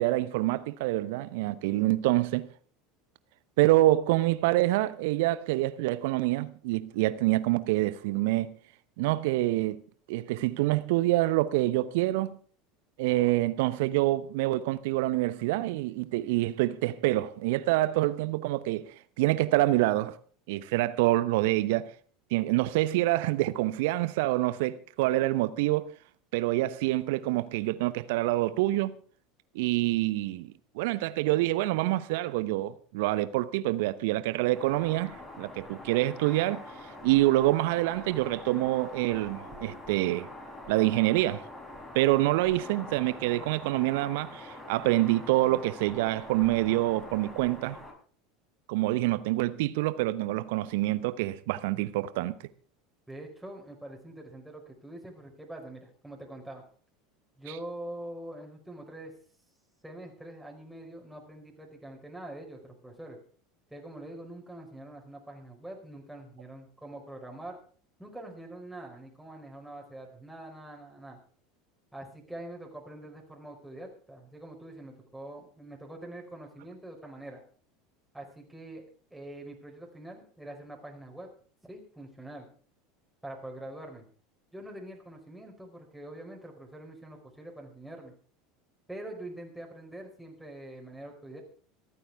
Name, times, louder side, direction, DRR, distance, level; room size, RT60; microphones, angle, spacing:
voice 1, 0.0-2.5 3.6-8.5 9.0-9.8 10.1-12.4 13.0-18.9 19.2-20.2 20.5-21.9 22.3-25.9 26.3-28.9 29.5-36.6 37.0-40.3 40.7-41.4 41.9-47.8 48.7-52.4, right 17 dB, 60° right, 0.9 m, -26 dB
sound 1, 34.5-47.9, left 1 dB, 15° left, 6.8 m, -45 dB
voice 2, 53.1-56.6 57.4-59.1 59.8-63.2 63.7-67.6 68.0-71.2 71.9-77.4 78.1-78.8 79.1-81.3 81.7-82.5 83.2-84.0 84.5-88.1 88.9-91.4, right 1 dB, 5° right, 5.0 m, -44 dB
26.0 x 9.1 x 3.6 m
figure-of-eight pair, 75°, 0 cm